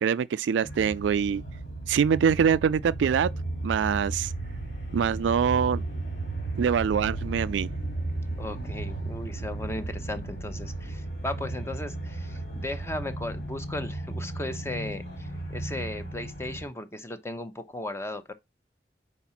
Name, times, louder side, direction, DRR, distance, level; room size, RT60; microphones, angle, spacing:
voice 1, 0.0-1.4 1.9-3.3 3.6-4.3 4.9-5.8 6.6-7.7, right 7 dB, 90° right, 0.3 m, -24 dB
sound 1, 0.6-16.6, right 2 dB, 70° left, 2.4 m, -34 dB
voice 2, 8.3-18.3, left 1 dB, 15° left, 0.8 m, -36 dB
4.9 x 4.1 x 5.7 m
head